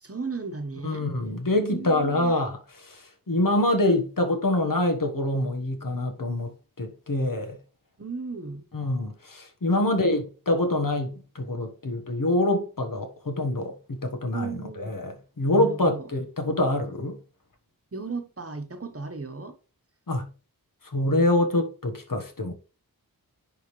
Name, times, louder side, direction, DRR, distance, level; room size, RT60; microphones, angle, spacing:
voice 1, 0.0-1.1 1.6-2.4 8.0-8.7 9.7-10.1 14.3-15.0 15.4-16.1 17.9-19.6, right 4 dB, 40° right, 1.1 m, -35 dB
voice 2, 0.8-7.6 8.7-17.2 20.1-20.3 20.8-22.5, left 1 dB, 60° left, 1.4 m, -25 dB
10.5 x 3.6 x 3.2 m
wide cardioid pair, 50°, 37 cm